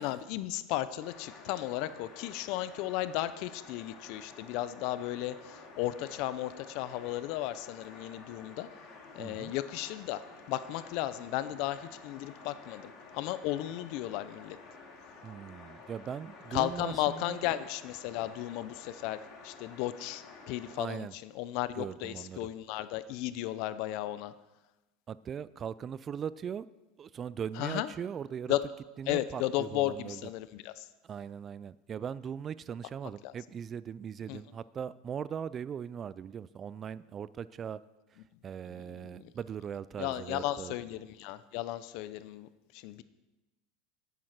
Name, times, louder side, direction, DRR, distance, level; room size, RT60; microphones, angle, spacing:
voice 1, 0.0-8.7 9.2-10.2 10.5-14.6 16.5-24.3 27.6-27.9 28.5-28.6 29.1-30.9 33.2-33.3 34.3-34.4 39.2-39.3 40.0-42.5 42.7-43.0, left 14 dB, 60° left, 14 dB, 0.6 m, -35 dB
sound 1, 1.0-20.7, left 4 dB, 40° left, 2.6 m, -51 dB
voice 2, 9.2-9.5 15.2-17.6 20.8-21.1 21.7-22.5 25.1-26.7 27.0-28.6 29.0-30.3 31.0-37.8 38.1-40.8, right 8 dB, 30° right, 18 dB, 0.3 m, -40 dB
9.2 x 9.0 x 6.0 m, 1.1 s
supercardioid pair, 130°, 0 cm